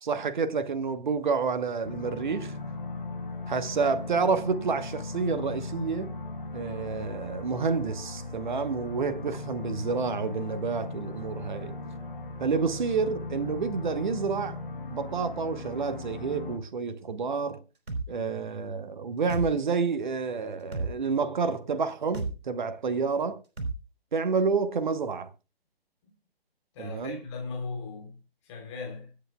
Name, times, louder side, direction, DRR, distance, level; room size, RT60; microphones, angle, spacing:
voice 1, 0.0-2.6 3.5-6.1 6.5-11.7 12.4-14.6 14.9-17.6 18.1-23.4 24.1-25.3 26.8-27.2, right 5 dB, 50° right, 1.2 m, -29 dB
sound 1, 1.8-16.6, left 3 dB, 55° left, 4.1 m, -38 dB
sound 2, 17.9-18.1 19.3-19.5 20.7-20.9 22.1-22.3 23.6-23.8, right 3 dB, 65° right, 4.4 m, -31 dB
voice 2, 26.7-28.2 28.4-29.1, left 4 dB, 25° left, 3.5 m, -38 dB
24.5 x 8.4 x 2.3 m
figure-of-eight pair, 140°, 31 cm